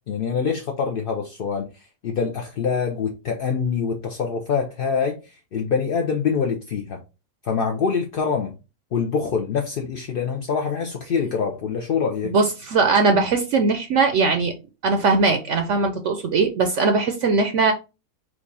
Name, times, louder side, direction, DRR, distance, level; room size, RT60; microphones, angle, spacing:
voice 1, 0.1-7.0 7.4-8.6 8.9-12.3, left 6 dB, 60° left, 0.6 m, -25 dB
voice 2, 12.2-14.5 14.8-17.7, right 4 dB, 65° right, 0.8 m, -20 dB
4.6 x 2.4 x 4.0 m
omnidirectional pair, 1.6 m